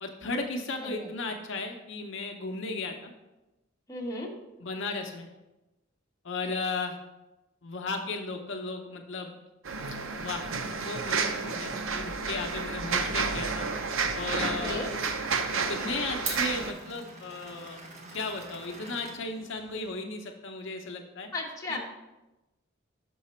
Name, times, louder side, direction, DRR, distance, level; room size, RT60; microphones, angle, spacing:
voice 1, 0.0-3.1 4.6-5.3 6.2-7.0 7.6-9.4 9.9-13.7 14.1-14.9 15.5-17.8 18.1-21.3 21.7-21.8, left 3 dB, 65° left, 3 dB, 0.7 m, -35 dB
voice 2, 3.9-4.3 14.6-14.9 21.3-21.8, left 2 dB, 15° left, -2 dB, 1.0 m, -35 dB
sound 1, 9.7-16.7, right 4 dB, 80° right, 0.6 m, -31 dB
Glass, 13.6-19.9, right 3 dB, 35° right, 1.0 m, -44 dB
5.8 x 5.4 x 4.2 m, 1.0 s
head